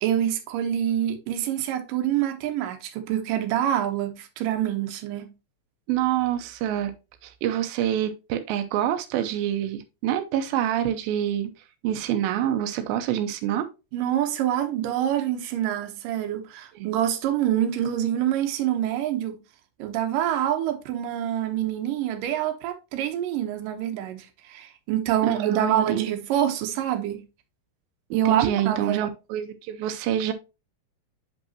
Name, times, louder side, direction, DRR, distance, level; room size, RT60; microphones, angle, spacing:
voice 1, 0.0-5.3 13.9-19.4 19.8-27.2 28.1-29.0, right 11 dB, 70° right, 2.6 m, -26 dB
voice 2, 5.9-6.9 7.2-11.5 11.8-13.7 16.8-16.9 25.2-26.0 28.3-30.3, right 11 dB, 90° right, 2.5 m, -26 dB
8.2 x 5.3 x 2.8 m
omnidirectional pair, 4.1 m